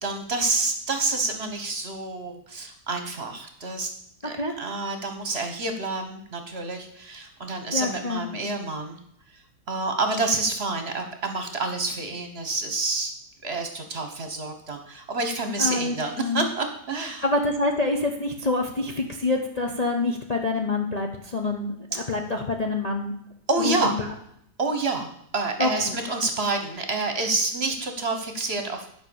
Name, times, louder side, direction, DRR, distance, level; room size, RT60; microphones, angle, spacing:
voice 1, 0.0-3.9 4.2-9.0 9.7-13.1 13.4-17.2 23.5-24.0 24.6-28.9, right 3 dB, 40° right, 5 dB, 1.2 m, -28 dB
voice 2, 7.7-8.3 15.6-16.5 17.2-23.1 23.6-24.1 25.6-26.0, left 2 dB, 30° left, 1 dB, 0.7 m, -26 dB
10.5 x 5.3 x 6.9 m, 0.71 s
omnidirectional pair, 1.8 m